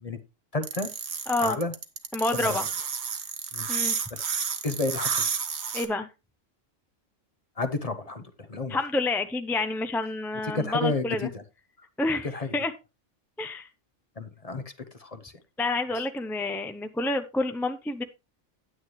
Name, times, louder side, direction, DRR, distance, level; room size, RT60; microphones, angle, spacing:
voice 1, 0.5-0.9 1.4-1.7 2.3-2.6 3.5-3.7 4.1-4.3 4.6-5.3 7.6-8.8 10.4-11.4 12.2-12.5 14.2-14.6 14.9-15.3, left 2 dB, 35° left, 9 dB, 0.8 m, -31 dB
sound 1, 0.6-5.9, right 6 dB, 60° right, 1.3 m, -30 dB
voice 2, 1.3-1.6 2.1-2.6 3.7-4.0 5.7-6.1 8.7-11.3 12.0-12.3 12.5-12.7 13.4-13.7 15.6-18.0, left 2 dB, ahead, 8 dB, 0.4 m, -28 dB
9.4 x 9.4 x 3.2 m, 0.26 s
omnidirectional pair, 1.3 m